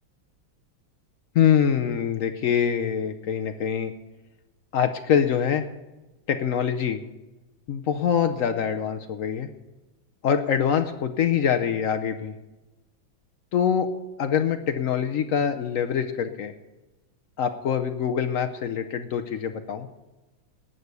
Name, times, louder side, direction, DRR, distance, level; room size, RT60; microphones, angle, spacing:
voice 1, 1.3-3.9 4.7-5.6 6.3-7.0 7.7-9.5 10.2-12.3 13.5-13.9 14.2-16.5 17.4-19.9, left 8 dB, 90° left, 7 dB, 0.7 m, -24 dB
18.5 x 6.7 x 8.2 m, 1.1 s
omnidirectional pair, 2.3 m